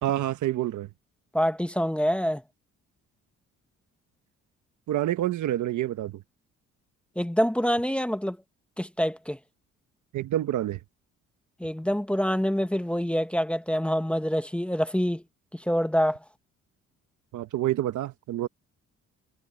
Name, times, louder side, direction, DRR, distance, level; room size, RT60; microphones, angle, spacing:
voice 1, 0.0-0.9 4.9-6.2 10.1-10.8 17.3-18.5, right 13 dB, 75° right, 1.3 m, -27 dB
voice 2, 1.3-2.4 7.2-8.4 8.8-9.4 11.6-15.2 15.5-16.2, equal, 5° left, 1.2 m, -26 dB
cardioid pair, 90°, 30 cm